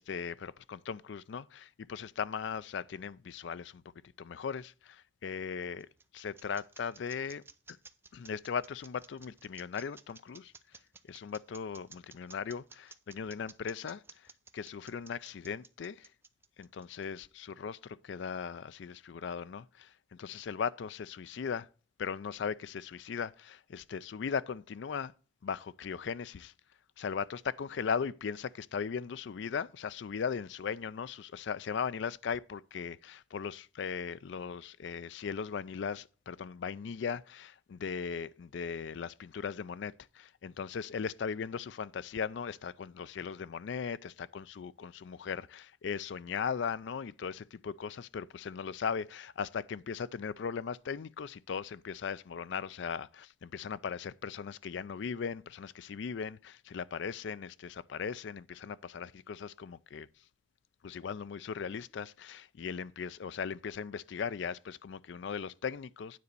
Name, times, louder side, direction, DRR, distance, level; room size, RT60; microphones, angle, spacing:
voice 1, 0.0-3.8 4.2-5.9 6.1-7.4 7.7-7.8 8.1-10.5 11.1-16.1 16.6-21.7 22.0-25.1 25.4-26.5 27.0-60.1 60.8-66.2, left 6 dB, 65° left, 0.4 m, -38 dB
sound 1, 5.2-17.2, right 4 dB, 10° right, 0.4 m, -54 dB
9.4 x 4.1 x 6.7 m
head